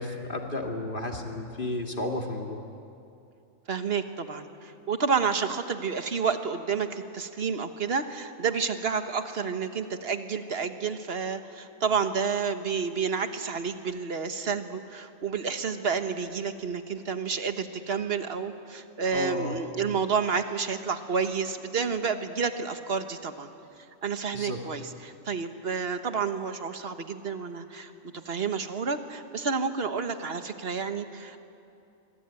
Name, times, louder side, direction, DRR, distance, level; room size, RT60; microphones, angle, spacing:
voice 1, 0.0-2.6 19.1-19.6 24.3-24.6, left 1 dB, 40° left, 2 dB, 2.7 m, -32 dB
voice 2, 3.7-23.5 24.0-27.9 28.2-31.4, right 5 dB, 50° right, 8 dB, 1.5 m, -30 dB
25.0 x 24.0 x 9.1 m, 2.6 s
omnidirectional pair, 1.4 m